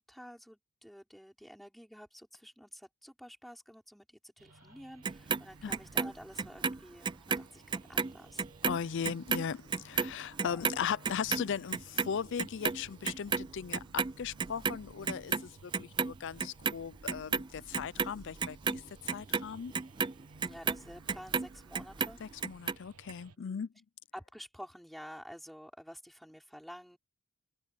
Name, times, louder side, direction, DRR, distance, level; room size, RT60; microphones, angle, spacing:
voice 1, 0.0-8.4 10.4-10.6 20.4-22.2 23.4-23.6 24.1-27.0, equal, ahead, 5.3 m, -50 dB
sound 1, 4.4-23.4, right 3 dB, 90° right, 1.1 m, -57 dB
Clock, 5.0-7.4 7.7-14.1 14.4-15.4 15.7-16.7 17.1-21.5 21.7-22.7 23.1-23.2, right 5 dB, 20° right, 0.4 m, -32 dB
voice 2, 8.6-18.8 19.1-19.7 22.2-23.7, left 7 dB, 55° left, 0.4 m, -38 dB
head